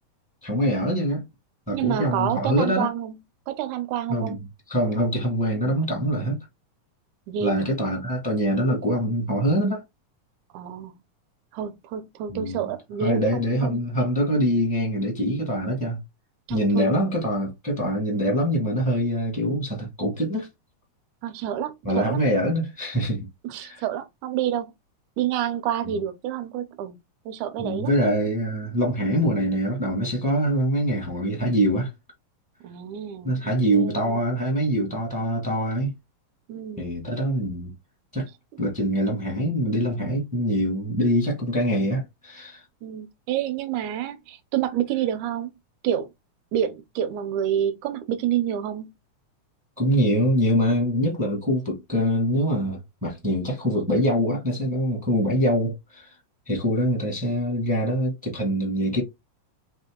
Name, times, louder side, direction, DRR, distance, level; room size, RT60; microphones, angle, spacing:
voice 1, 0.4-1.3 1.7-2.9 4.1-4.4 4.7-6.4 7.4-9.8 12.3-12.7 13.0-16.0 16.5-20.5 21.8-23.3 23.6-23.8 25.8-25.9 27.6-31.9 33.2-35.9 36.8-37.7 38.1-38.3 38.6-42.6 49.8-56.1 56.5-59.0, equal, 20° right, 0.5 m, -24 dB
voice 2, 1.7-3.2 3.5-4.4 7.3-7.7 10.5-10.9 11.5-13.8 16.5-16.9 21.2-22.2 23.4-24.7 25.2-27.0 27.3-27.9 32.6-33.3 33.7-34.2 36.5-36.9 42.8-45.5 45.8-46.1 46.5-48.9, right 10 dB, 75° right, 2.0 m, -28 dB
5.1 x 2.7 x 3.6 m
omnidirectional pair, 3.7 m